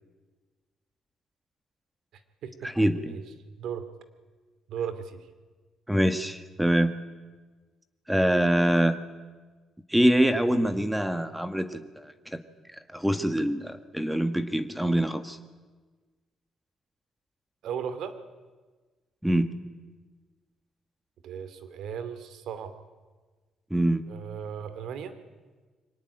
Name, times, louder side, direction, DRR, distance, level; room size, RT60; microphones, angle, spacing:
voice 1, 2.1-2.7 3.0-3.2 3.6-3.9 4.7-5.3 17.6-18.2 21.2-22.8 24.1-25.1, right 7 dB, 80° right, 12 dB, 2.4 m, -36 dB
voice 2, 2.6-3.2 5.9-6.9 8.1-9.0 9.9-12.4 12.7-15.4 19.2-19.5 23.7-24.0, right 1 dB, 5° right, 9 dB, 1.4 m, -25 dB
23.5 x 18.5 x 10.0 m, 1.4 s
cardioid pair, 90°, 0 cm